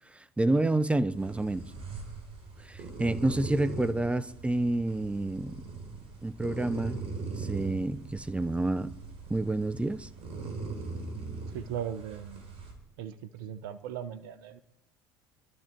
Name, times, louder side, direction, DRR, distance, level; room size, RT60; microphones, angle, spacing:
voice 1, 0.1-1.6 2.6-5.6 6.2-8.9 9.3-10.1, right 2 dB, 10° right, 0.7 m, -29 dB
sound 1, 1.1-12.7, right 4 dB, 55° right, 3.8 m, -40 dB
voice 2, 11.5-12.5 13.0-14.6, right 9 dB, 75° right, 0.9 m, -38 dB
25.0 x 12.0 x 4.5 m
hypercardioid pair, 75°, 12 cm